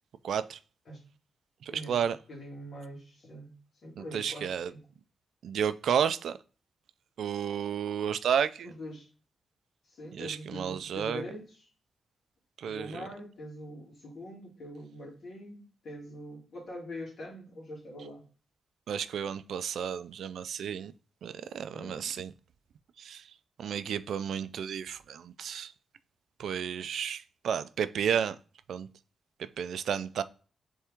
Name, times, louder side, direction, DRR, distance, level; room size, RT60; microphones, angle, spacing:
voice 1, 0.2-0.6 1.6-2.2 4.0-4.7 5.4-6.4 7.2-8.7 10.1-11.2 12.6-13.1 18.9-20.9 21.2-22.3 23.0-23.2 23.6-25.7 26.4-28.4 28.7-28.9 29.6-30.2, right 8 dB, 80° right, 0.3 m, -32 dB
voice 2, 2.3-3.6 3.8-4.9 8.6-9.1 9.9-11.7 12.7-18.2 21.7-22.1, equal, 55° left, 2.4 m, -43 dB
4.3 x 3.5 x 3.4 m
wide cardioid pair, 135°, 0 cm